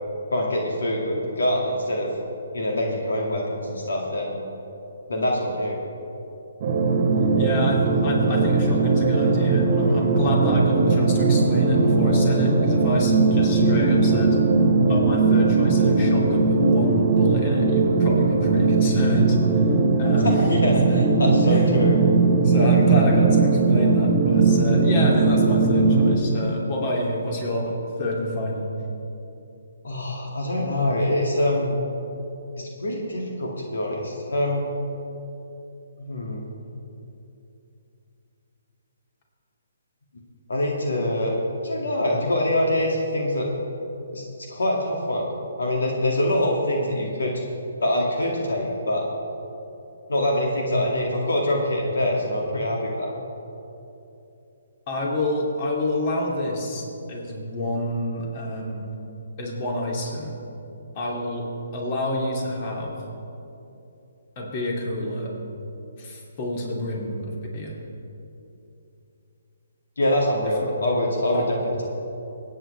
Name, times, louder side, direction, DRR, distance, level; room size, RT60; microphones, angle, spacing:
voice 1, 0.3-2.1 2.5-4.4 5.1-5.8 20.2-22.0 29.8-31.8 32.6-34.7 36.0-36.4 40.5-41.3 41.6-43.5 44.1-44.2 44.5-45.3 45.6-47.3 47.8-49.1 50.1-53.1 70.0-71.9, left 1 dB, 75° left, -1 dB, 2.2 m, -24 dB
sound 1, 6.6-26.2, right 3 dB, 45° right, 1.4 m, -19 dB
voice 2, 7.4-14.4 14.9-19.7 19.9-20.5 20.8-21.0 21.5-21.7 22.4-28.7 54.9-58.9 59.4-60.4 60.9-63.0 64.4-65.3 66.0-67.8 70.6-70.7 71.3-71.4, left 1 dB, 35° left, -2 dB, 2.7 m, -28 dB
24.0 x 9.1 x 3.4 m, 2.9 s
hypercardioid pair, 145°, 0 cm